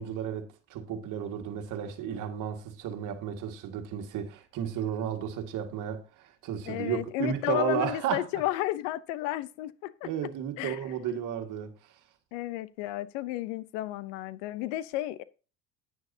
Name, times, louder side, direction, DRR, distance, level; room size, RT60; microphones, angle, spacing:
voice 1, 0.0-8.3 10.0-12.0, right 9 dB, 55° right, 1.9 m, -33 dB
voice 2, 6.7-10.1 10.6-10.8 12.3-15.2, left 15 dB, 80° left, 0.7 m, -32 dB
9.9 x 9.5 x 2.8 m
supercardioid pair, 100°, 37 cm